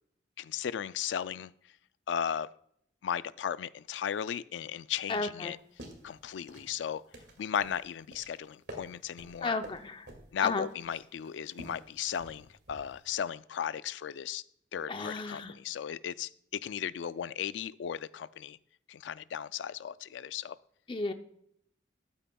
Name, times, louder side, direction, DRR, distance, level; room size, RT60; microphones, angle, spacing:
voice 1, 0.4-1.5 2.1-2.5 3.0-5.6 6.0-7.0 7.4-9.6 10.3-14.4 14.7-18.6 18.9-20.6, left 8 dB, 75° left, 17 dB, 0.3 m, -36 dB
voice 2, 5.1-5.5 9.4-10.1 10.4-10.7 14.9-15.5 20.9-21.1, left 3 dB, 30° left, 8 dB, 0.5 m, -33 dB
sound 1, 5.6-13.1, right 1 dB, 65° right, 2.2 m, -51 dB
12.5 x 8.9 x 2.3 m, 0.70 s
head